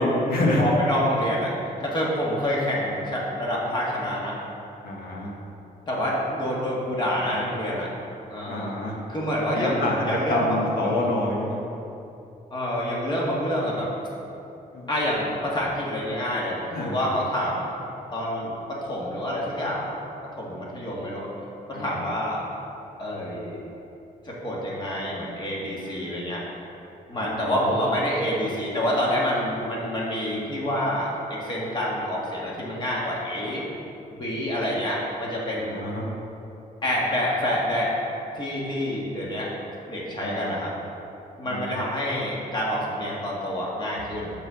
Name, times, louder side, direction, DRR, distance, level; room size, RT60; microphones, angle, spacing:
voice 1, 0.0-0.6 4.8-5.3 8.5-8.9 9.5-11.6 14.7-14.8 16.7-16.9 21.7-21.9 25.8-26.0 27.1-27.5 35.6-36.0 40.2-40.5 41.4-41.6, left 1 dB, 90° left, -2 dB, 1.5 m, -27 dB
voice 2, 0.6-1.5 1.8-4.4 5.9-7.9 8.3-8.7 9.1-11.0 12.5-13.9 14.9-17.7 18.1-19.9 20.4-21.3 21.7-22.4 23.0-23.6 24.2-26.4 27.1-33.6 34.1-35.8 36.8-37.9 38.3-39.5 39.9-40.7 41.4-44.3, equal, 30° left, -5 dB, 1.6 m, -27 dB
6.1 x 5.2 x 6.3 m, 2.8 s
wide cardioid pair, 175°, 15 cm